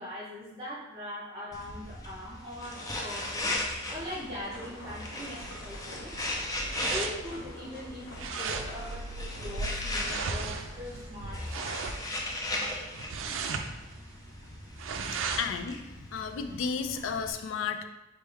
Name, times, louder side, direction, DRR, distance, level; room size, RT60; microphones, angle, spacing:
voice 1, 0.0-6.1 6.7-11.8 13.6-13.7 15.0-15.4, left 1 dB, 30° right, -11 dB, 1.3 m, -41 dB
sound 1, 1.5-17.3, left 1 dB, 20° left, 0.5 m, -38 dB
sound 2, 2.6-11.0, left 1 dB, 90° left, 1.1 m, -48 dB
sound 3, 5.4-15.6, right 4 dB, 70° right, 0.4 m, -37 dB
voice 2, 15.4-17.8, left 6 dB, 70° left, 8 dB, 0.4 m, -33 dB
4.3 x 3.3 x 3.5 m, 1.0 s
head